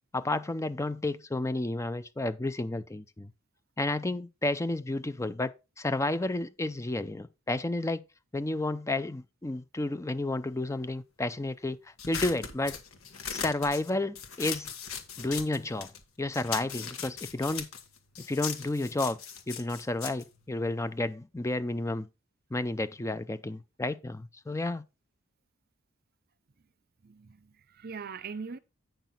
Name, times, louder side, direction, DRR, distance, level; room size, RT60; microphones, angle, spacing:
voice 1, 0.1-3.3 3.8-5.5 5.8-8.0 8.3-11.8 12.1-12.8 13.3-14.7 15.2-15.9 16.2-17.7 18.3-19.2 19.5-22.1 22.5-24.8, left 2 dB, 15° left, 0.5 m, -31 dB
sound 1, 12.0-16.0 16.3-21.1, left 7 dB, 90° left, 1.5 m, -39 dB
voice 2, 27.0-28.6, right 5 dB, 45° right, 0.6 m, -41 dB
9.1 x 6.0 x 4.0 m
head